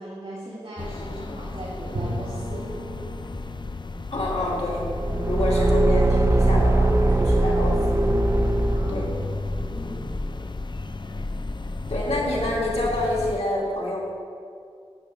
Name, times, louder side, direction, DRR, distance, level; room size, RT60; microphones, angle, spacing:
voice 1, 0.0-2.7 8.7-9.1 9.4-9.6, right 1 dB, 55° right, -8 dB, 1.9 m, -38 dB
sound 1, 0.8-13.4, left 2 dB, 45° left, 0.5 m, -33 dB
Bowed string instrument, 1.9-6.8, equal, 75° right, 0.9 m, -38 dB
voice 2, 4.1-4.9 5.2-7.7 8.9-9.1 9.7-10.1 11.9-14.0, left 1 dB, 75° left, -4 dB, 2.4 m, -27 dB
Car / Engine, 4.8-9.4, right 2 dB, 25° right, 0.6 m, -21 dB
9.3 x 7.8 x 5.1 m, 2.4 s
wide cardioid pair, 55°, 11 cm